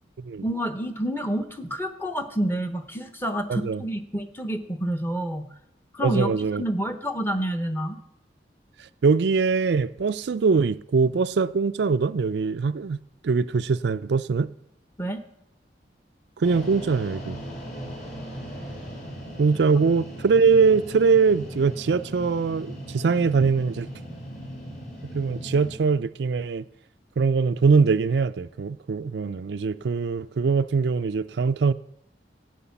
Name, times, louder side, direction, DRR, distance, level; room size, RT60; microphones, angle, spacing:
voice 1, 0.4-5.5 5.9-8.0 15.0-15.2, equal, 10° left, 0.9 m, -28 dB
voice 2, 3.5-3.8 6.0-6.6 9.0-13.0 13.2-14.5 16.4-17.4 19.4-23.9 25.1-26.6 27.2-31.7, right 5 dB, 75° right, 0.4 m, -22 dB
sound 1, 16.4-25.8, equal, 45° left, 4.3 m, -38 dB
14.0 x 9.4 x 7.1 m
head